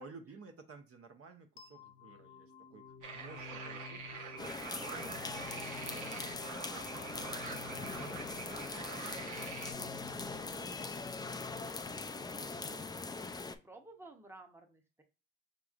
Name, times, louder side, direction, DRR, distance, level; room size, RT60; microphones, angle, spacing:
voice 1, 0.0-6.3 6.7-7.7 8.0-11.2 11.8-12.0 12.3-12.9, right 4 dB, 50° right, 5 dB, 0.7 m, -56 dB
sound 1, 1.6-12.5, left 5 dB, 55° left, 0.7 m, -53 dB
sound 2, 3.0-9.7, right 5 dB, 85° right, 0.9 m, -45 dB
sound 3, 4.4-13.6, left 4 dB, 15° left, 0.3 m, -42 dB
voice 2, 11.5-12.3 13.2-15.0, right 2 dB, 10° right, 3 dB, 0.8 m, -56 dB
5.0 x 3.0 x 2.4 m, 0.31 s
cardioid pair, 90°, 30 cm